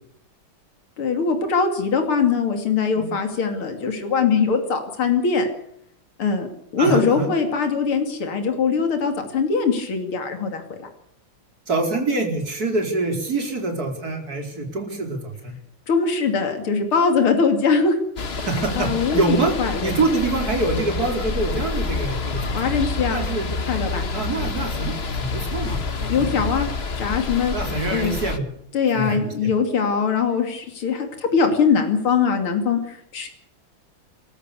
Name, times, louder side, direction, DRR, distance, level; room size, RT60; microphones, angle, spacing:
voice 1, 1.0-5.5 6.2-6.5 6.7-10.8 15.9-18.0 18.8-19.9 22.5-23.2 23.7-24.0 26.1-26.7 27.0-27.5 27.9-28.2 28.7-33.3, left 5 dB, 75° left, 5 dB, 3.5 m, -21 dB
voice 2, 6.8-7.3 11.7-15.6 18.4-19.5 19.8-22.6 23.1-23.5 24.1-26.4 27.5-28.5 28.9-29.5, right 3 dB, 45° right, 3 dB, 5.0 m, -25 dB
sound 1, 18.2-28.4, left 4 dB, 35° left, 1.3 m, -28 dB
27.5 x 14.0 x 8.4 m, 0.71 s
omnidirectional pair, 2.4 m